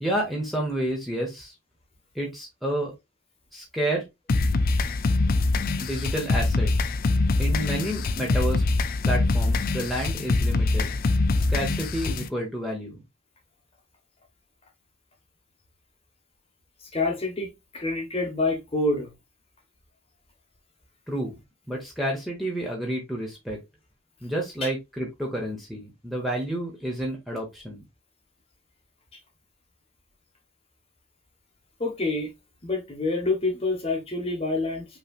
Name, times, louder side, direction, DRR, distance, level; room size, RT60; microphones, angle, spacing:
voice 1, 0.0-1.5 2.1-2.9 3.5-4.0 5.8-6.7 7.4-8.6 9.0-10.9 11.4-13.0 21.1-21.4 21.7-23.6 24.2-27.8, right 1 dB, ahead, 0.9 m, -30 dB
sound 1, 4.3-12.3, left 3 dB, 40° left, 0.4 m, -24 dB
voice 2, 16.9-19.1 31.8-32.3 32.6-34.9, left 2 dB, 25° left, 1.2 m, -27 dB
5.5 x 3.2 x 2.4 m
head